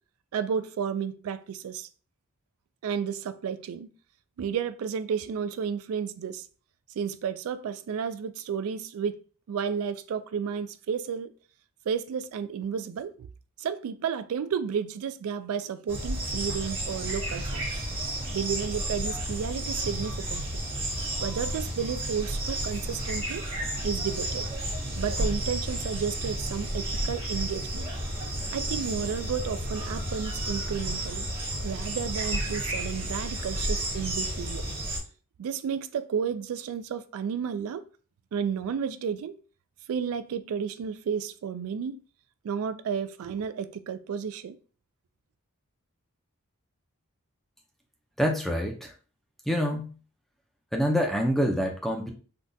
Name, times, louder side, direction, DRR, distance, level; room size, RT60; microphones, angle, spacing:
voice 1, 0.3-1.9 2.8-3.9 4.4-6.5 7.0-9.2 9.5-11.3 11.9-13.3 13.6-17.6 18.3-20.5 21.2-23.4 23.8-24.5 25.0-27.9 28.5-31.3 31.6-34.6 35.4-37.8 38.3-39.4 39.9-42.0 42.4-44.6, right 7 dB, 70° right, 0.3 m, -32 dB
sound 1, 15.9-35.0, right 1 dB, 25° right, 0.8 m, -32 dB
voice 2, 48.2-48.9 49.5-49.9 50.7-52.1, equal, ahead, 0.4 m, -26 dB
3.7 x 2.2 x 2.6 m
head